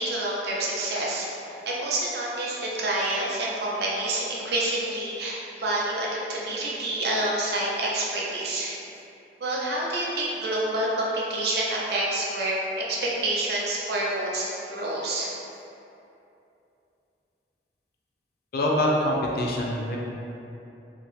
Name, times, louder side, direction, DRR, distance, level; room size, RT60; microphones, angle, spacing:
voice 1, 0.0-8.8 9.4-12.5 12.9-15.3, right 1 dB, 60° right, -4 dB, 0.5 m, -28 dB
voice 2, 18.5-20.0, left 1 dB, 55° left, -2 dB, 0.4 m, -24 dB
2.8 x 2.1 x 3.0 m, 2.8 s
head